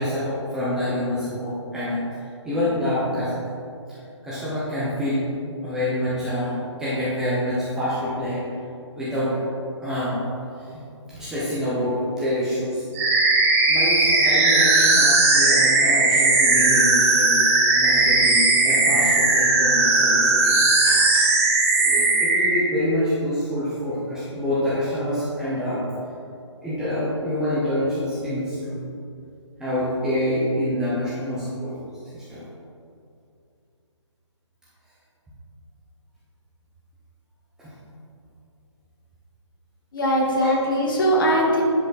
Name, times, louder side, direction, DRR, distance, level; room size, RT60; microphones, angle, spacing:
voice 1, 0.0-3.4 3.9-4.0 4.2-5.3 5.6-8.4 9.0-9.4 9.8-10.2 10.6-10.8 11.1-12.9 13.7-17.5 17.7-20.6 20.9-21.2 21.9-25.9 26.6-28.9 29.6-31.7 32.1-32.4 37.6-37.7 40.4-40.5, left 1 dB, 5° right, -11 dB, 0.9 m, -26 dB
sound 1, 12.9-22.6, right 3 dB, 25° right, 1.3 m, -18 dB
voice 2, 39.9-41.6, equal, 40° left, -2 dB, 1.8 m, -21 dB
10.5 x 5.1 x 4.2 m, 2.5 s
hypercardioid pair, 160°, 16 cm